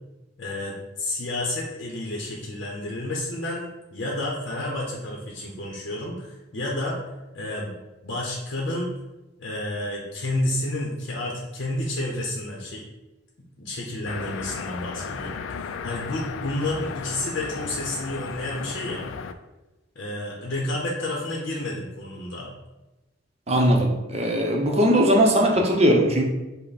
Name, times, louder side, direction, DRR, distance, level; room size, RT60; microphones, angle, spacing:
voice 1, 0.4-7.0 7.3-7.8 8.0-8.9 9.4-12.8 13.6-19.1 20.0-22.5, left 1 dB, 60° left, -3 dB, 0.7 m, -30 dB
sound 1, 14.1-19.3, left 6 dB, 85° left, 0.3 m, -35 dB
voice 2, 23.5-26.2, equal, 35° right, 1 dB, 0.7 m, -19 dB
5.5 x 2.1 x 4.1 m, 1.0 s
head